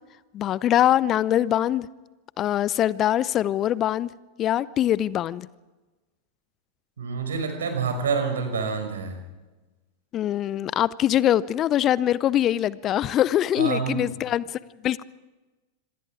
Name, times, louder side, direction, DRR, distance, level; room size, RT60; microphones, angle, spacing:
voice 1, 0.3-1.9 2.4-4.1 4.4-5.5 10.1-15.0, left 11 dB, 30° left, 0.6 m, -23 dB
voice 2, 7.0-9.2 13.6-14.1, right 5 dB, 65° right, 5.4 m, -27 dB
26.5 x 25.0 x 4.8 m
figure-of-eight pair, 90°, 0 cm